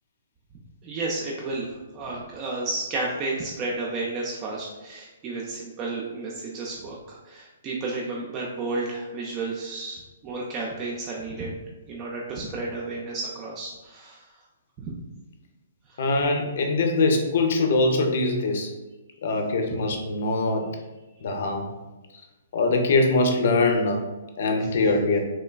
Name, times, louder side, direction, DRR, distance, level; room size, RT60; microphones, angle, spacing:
voice 1, 0.8-11.6 11.9-14.3 14.8-14.9 15.9-16.0, right 3 dB, 30° right, -3 dB, 0.4 m, -32 dB
voice 2, 16.0-18.7 19.2-20.7 21.2-21.7 22.5-24.0 24.4-25.2, left 3 dB, 60° left, 3 dB, 0.5 m, -22 dB
3.2 x 2.2 x 2.2 m, 1.1 s
hypercardioid pair, 130°, 0 cm